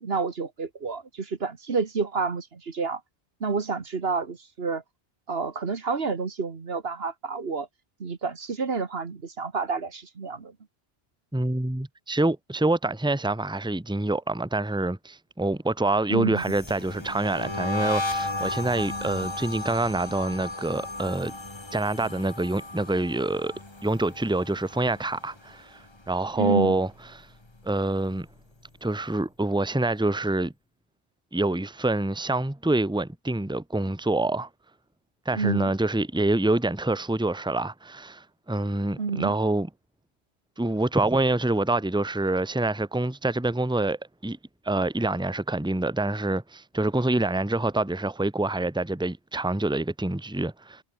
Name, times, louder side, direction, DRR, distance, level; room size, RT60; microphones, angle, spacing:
voice 1, 0.0-3.0 3.4-4.8 5.3-7.7 8.0-10.5 16.1-16.4 26.4-26.8 35.3-35.7 39.0-39.3, right 4 dB, 70° right, 1.8 m, -29 dB
voice 2, 11.3-21.3 21.7-23.5 23.8-26.9 27.1-27.3 27.6-28.3 28.8-30.5 31.3-34.5 35.2-39.7 40.6-44.0 44.2-44.4 44.6-50.8, right 2 dB, 5° right, 1.3 m, -26 dB
sound 1, 16.4-25.6 25.8-26.3 26.6-28.2, left 2 dB, 25° left, 1.9 m, -35 dB
omnidirectional pair, 1.1 m